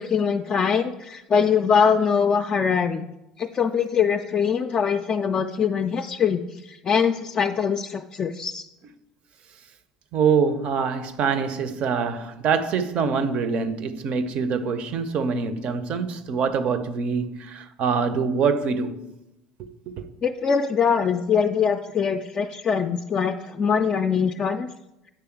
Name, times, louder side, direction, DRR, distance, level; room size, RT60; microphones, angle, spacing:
voice 1, 0.0-3.1 3.4-8.6 20.2-24.7, left 6 dB, 35° left, 0.3 m, -23 dB
voice 2, 10.1-19.0 19.6-20.1, right 5 dB, 50° right, 0.6 m, -25 dB
8.8 x 3.4 x 4.5 m
hypercardioid pair, 70°, 2 cm